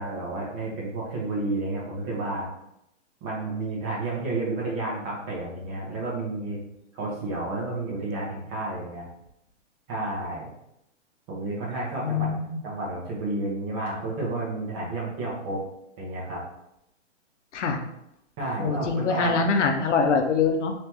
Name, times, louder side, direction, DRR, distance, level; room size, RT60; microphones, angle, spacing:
voice 1, 0.0-2.5 3.2-6.6 6.9-9.1 9.9-10.5 11.3-12.4 12.6-15.6 16.0-16.4 18.4-19.4, right 2 dB, 25° right, -4 dB, 1.1 m, -31 dB
voice 2, 12.0-12.6 17.5-17.8 18.6-20.7, left 5 dB, 70° left, 4 dB, 0.8 m, -24 dB
3.4 x 3.1 x 3.0 m, 0.81 s
hypercardioid pair, 150°, 37 cm